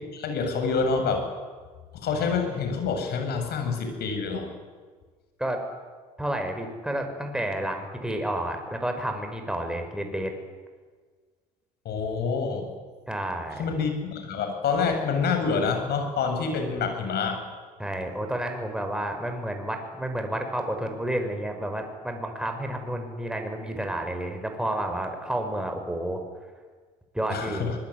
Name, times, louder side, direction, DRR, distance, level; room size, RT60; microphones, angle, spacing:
voice 1, 0.1-1.3 2.0-4.5 11.9-12.7 13.6-17.4 27.3-27.8, left 5 dB, 55° left, 6 dB, 7.3 m, -27 dB
voice 2, 6.2-10.3 13.1-13.6 17.8-26.2 27.1-27.7, right 1 dB, 5° right, 4 dB, 6.5 m, -30 dB
24.5 x 21.0 x 10.0 m, 1.5 s
hypercardioid pair, 65°, 20 cm